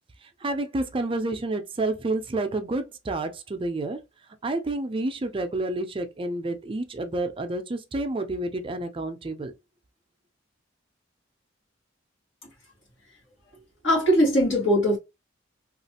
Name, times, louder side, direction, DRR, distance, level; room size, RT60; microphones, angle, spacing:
voice 1, 0.2-4.0 4.4-9.5, right 2 dB, 30° right, 0.4 m, -29 dB
voice 2, 13.8-15.0, equal, 80° left, 1.8 m, -20 dB
3.1 x 2.4 x 2.8 m
head